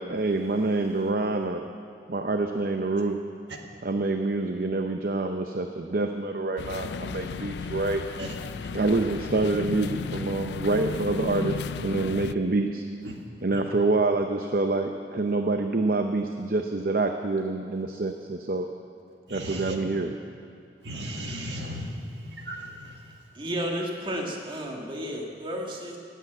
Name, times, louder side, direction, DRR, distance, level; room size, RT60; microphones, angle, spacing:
voice 1, 0.0-1.6 2.1-3.2 3.8-8.0 8.7-12.8 13.4-18.7 19.3-20.1, right 2 dB, 55° right, 5 dB, 0.7 m, -26 dB
sound 1, 6.6-12.3, left 5 dB, 70° left, 0.4 m, -34 dB
voice 2, 8.2-8.7 13.0-13.2 13.5-13.6 19.3-19.8 20.8-23.2, equal, 75° right, 1 dB, 1.8 m, -37 dB
voice 3, 23.3-26.0, equal, 30° right, 0 dB, 1.8 m, -32 dB
18.0 x 8.4 x 8.0 m, 2.7 s
head